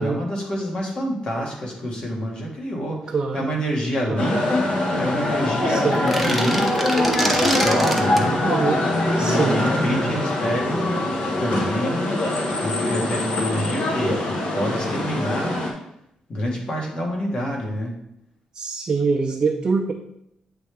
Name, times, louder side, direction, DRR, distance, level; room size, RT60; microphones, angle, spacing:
voice 1, 0.0-4.6 5.0-8.4 9.2-11.0 11.4-12.1 12.6-15.6 16.3-17.9, equal, 45° left, -1 dB, 1.5 m, -27 dB
voice 2, 3.1-3.5 4.1-4.4 5.7-6.0 8.4-8.8 9.2-9.6 18.5-19.9, right 4 dB, 30° right, 0 dB, 0.5 m, -24 dB
sound 1, 4.2-15.7, left 1 dB, 60° left, 1.1 m, -23 dB
sound 2, 5.9-8.3, right 1 dB, ahead, 0.8 m, -25 dB
8.3 x 3.3 x 3.4 m, 0.79 s
cardioid pair, 135°, 2 cm